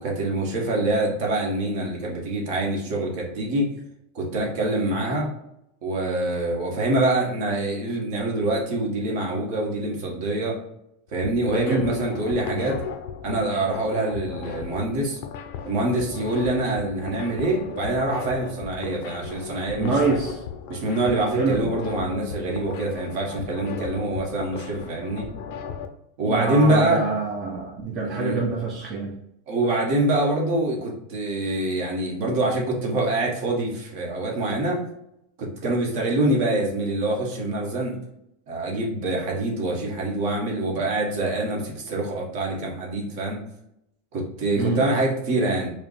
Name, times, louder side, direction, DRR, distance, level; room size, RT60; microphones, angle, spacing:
voice 1, 0.0-3.7 4.1-5.3 5.8-10.6 11.1-12.8 13.2-15.2 15.6-20.1 20.7-25.3 26.2-27.0 28.1-28.4 29.5-34.8 35.4-37.9 38.5-43.4 44.1-45.7, right 2 dB, 60° right, -1 dB, 1.3 m, -25 dB
sound 1, 11.1-25.9, left 7 dB, 60° left, 0.5 m, -36 dB
voice 2, 19.8-20.4 21.4-21.7 26.3-29.1 44.6-44.8, right 3 dB, 30° right, -2 dB, 0.6 m, -25 dB
4.8 x 2.1 x 3.2 m, 0.80 s
supercardioid pair, 155°, 0 cm